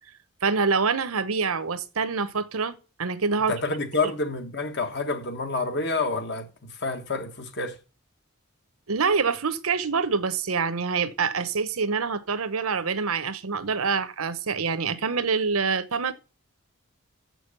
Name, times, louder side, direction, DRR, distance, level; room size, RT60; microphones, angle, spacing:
voice 1, 0.4-3.5 8.9-16.1, right 5 dB, 80° right, 0.9 m, -26 dB
voice 2, 3.5-7.8, left 3 dB, 50° left, 1.6 m, -28 dB
7.6 x 6.3 x 6.7 m
head